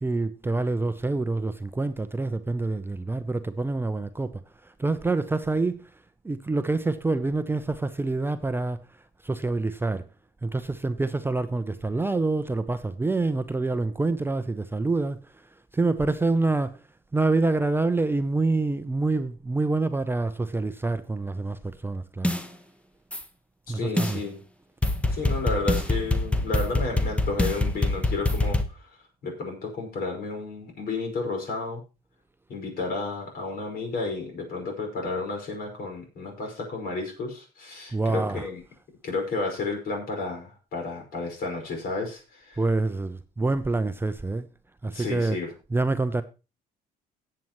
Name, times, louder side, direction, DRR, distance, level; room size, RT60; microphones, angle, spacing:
voice 1, 0.0-5.9 6.2-8.8 9.2-10.0 10.4-15.2 15.7-16.8 17.1-22.3 23.7-24.2 37.9-38.5 42.6-44.5 44.8-45.4 45.7-46.2, right 3 dB, 15° right, 0.6 m, -26 dB
sound 1, 22.2-22.4 23.1-23.2 24.0-24.1 24.8-28.6, left 2 dB, 5° left, 1.0 m, -24 dB
voice 2, 23.7-24.4 25.1-28.9 29.2-31.8 32.5-38.6 39.0-42.6 44.9-45.5, left 3 dB, 60° left, 5.4 m, -32 dB
18.0 x 7.8 x 3.0 m
cardioid pair, 110°, 17 cm